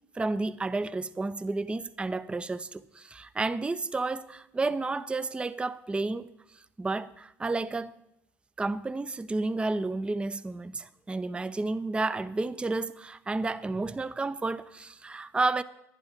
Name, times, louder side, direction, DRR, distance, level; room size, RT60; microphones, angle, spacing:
voice 1, 0.1-7.9 8.6-15.6, right 3 dB, 10° right, 0.5 m, -31 dB
10.5 x 10.5 x 5.2 m
hypercardioid pair, 65°, 9 cm